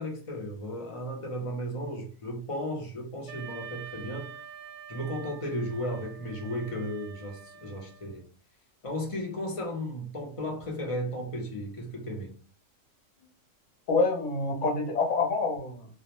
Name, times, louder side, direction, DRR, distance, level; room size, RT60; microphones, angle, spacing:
voice 1, 0.0-4.3 4.9-8.2 8.8-12.3, equal, 40° left, 0.4 m, -35 dB
Wind instrument woodwind instrument, 3.3-8.2, right 7 dB, 70° right, 0.8 m, -46 dB
voice 2, 13.9-15.9, left 3 dB, 70° left, 1.0 m, -27 dB
2.4 x 2.0 x 2.9 m
omnidirectional pair, 1.4 m